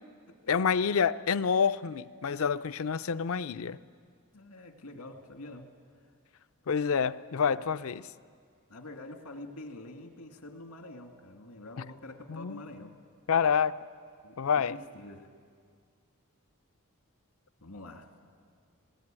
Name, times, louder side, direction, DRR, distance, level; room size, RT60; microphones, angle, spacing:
voice 1, 0.5-3.8 6.7-8.1 12.3-12.6 13.3-13.8 14.4-14.8, left 6 dB, 65° left, 15 dB, 0.5 m, -28 dB
voice 2, 4.3-5.7 7.4-7.8 8.7-12.9 14.2-15.3 17.6-18.2, left 2 dB, 85° left, 5 dB, 2.1 m, -46 dB
20.0 x 18.5 x 8.9 m, 2.1 s
head